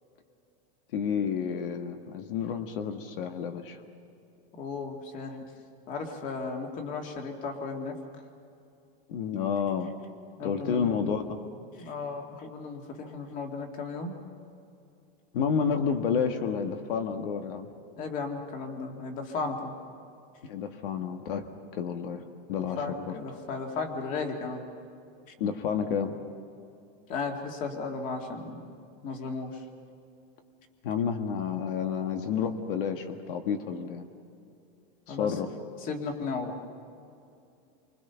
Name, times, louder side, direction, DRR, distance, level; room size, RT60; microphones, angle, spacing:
voice 1, 0.9-3.8 9.1-9.9 10.4-11.4 15.3-17.7 20.4-21.4 21.7-22.2 22.5-23.1 25.4-26.1 30.8-34.1 35.1-35.5, left 7 dB, 65° left, 6 dB, 1.6 m, -30 dB
voice 2, 4.5-5.4 5.9-8.0 10.4-11.0 11.8-14.1 18.0-19.8 22.8-24.6 27.1-29.6 35.1-35.4 35.8-36.5, left 4 dB, 25° left, 3 dB, 2.2 m, -35 dB
29.0 x 25.0 x 5.8 m, 2.6 s
supercardioid pair, 175°, 29 cm